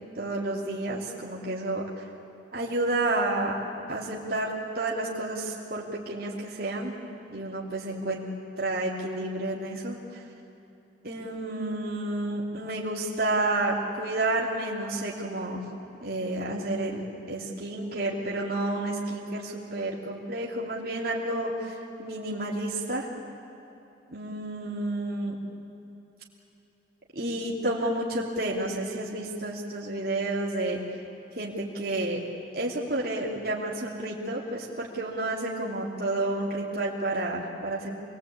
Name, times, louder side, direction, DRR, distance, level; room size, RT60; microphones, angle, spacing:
voice 1, 0.1-2.1 2.5-3.5 3.9-6.9 7.3-8.2 8.6-10.2 11.0-15.6 16.0-17.0 17.3-23.1 24.1-25.4 27.1-30.8 31.3-32.2 32.5-37.9, right 2 dB, 55° right, -4 dB, 3.1 m, -30 dB
26.5 x 22.0 x 8.7 m, 3.0 s
head